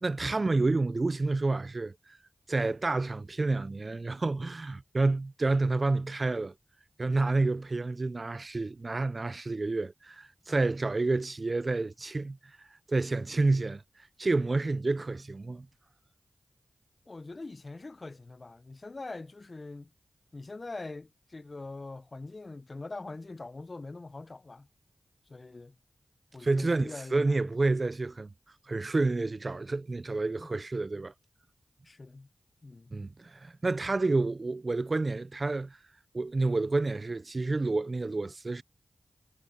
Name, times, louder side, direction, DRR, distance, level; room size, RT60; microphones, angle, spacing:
voice 1, 0.0-2.2 2.5-6.5 7.0-15.7 26.4-28.3 28.7-31.1 32.9-35.8 36.1-38.6, right 3 dB, 50° right, 0.4 m, -29 dB
voice 2, 17.1-19.9 20.3-24.7 25.3-25.8 26.3-27.4 30.4-30.5 31.8-32.3 32.6-32.9, left 3 dB, 50° left, 0.7 m, -43 dB
cardioid pair, 45°, 0 cm